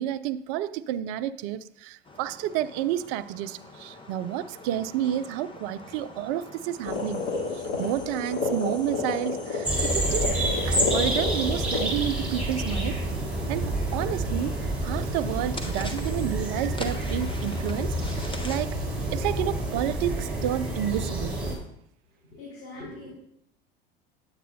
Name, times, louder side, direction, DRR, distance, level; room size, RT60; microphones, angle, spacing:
voice 1, 0.0-7.3 7.5-10.3 10.7-13.0 13.5-18.8 19.1-21.3, right 11 dB, 55° right, 0.4 m, -30 dB
sound 1, 2.0-18.6, left 2 dB, 15° left, 1.2 m, -45 dB
sound 2, 6.8-11.8, left 3 dB, 55° left, 3.1 m, -30 dB
sound 3, 9.6-21.5, right 1 dB, 5° right, 3.8 m, -28 dB
voice 2, 22.2-23.1, left 2 dB, 75° left, 3.7 m, -42 dB
9.4 x 8.4 x 2.7 m
hypercardioid pair, 80°, 31 cm